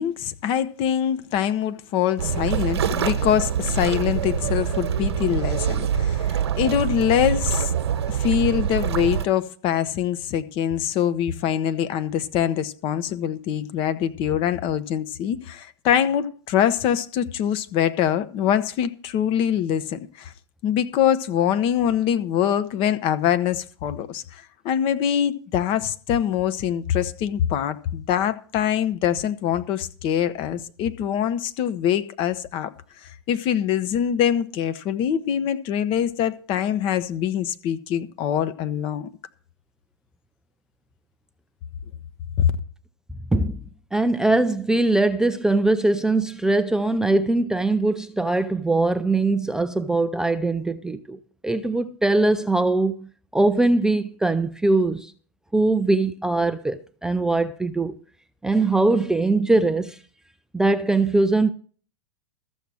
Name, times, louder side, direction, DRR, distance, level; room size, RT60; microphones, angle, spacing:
voice 1, 0.0-7.7 8.1-20.3 20.6-32.7 33.3-39.1 42.4-42.5, left 9 dB, 40° left, 1.0 m, -24 dB
sound 1, 2.2-9.3, right 9 dB, 75° right, 1.2 m, -25 dB
voice 2, 43.9-53.1 53.3-55.1 55.5-58.0 58.4-60.0 60.5-61.5, right 2 dB, 5° right, 0.4 m, -21 dB
13.5 x 7.1 x 6.3 m
hypercardioid pair, 120°, 14 cm